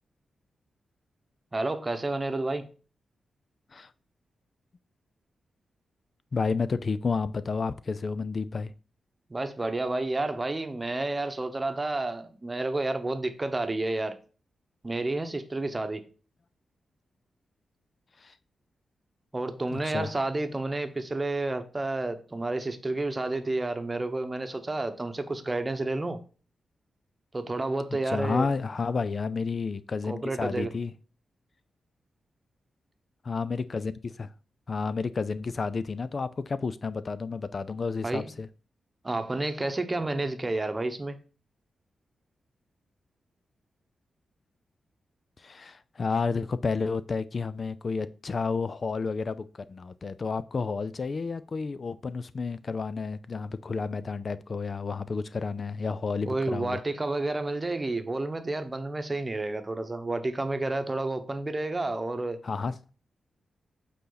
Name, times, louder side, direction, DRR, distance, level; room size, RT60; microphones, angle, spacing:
voice 1, 1.5-2.7 9.3-14.2 14.8-16.0 19.3-26.2 27.3-28.5 30.1-30.7 38.0-38.3 39.0-41.2 56.3-62.4, right 2 dB, 25° right, 1.0 m, -30 dB
voice 2, 6.3-8.7 18.2-18.4 19.7-20.1 28.0-30.9 33.2-34.3 34.7-38.5 45.4-56.8 62.4-62.8, left 4 dB, 45° left, 0.4 m, -31 dB
8.2 x 4.1 x 3.9 m
cardioid pair, 80°, 0 cm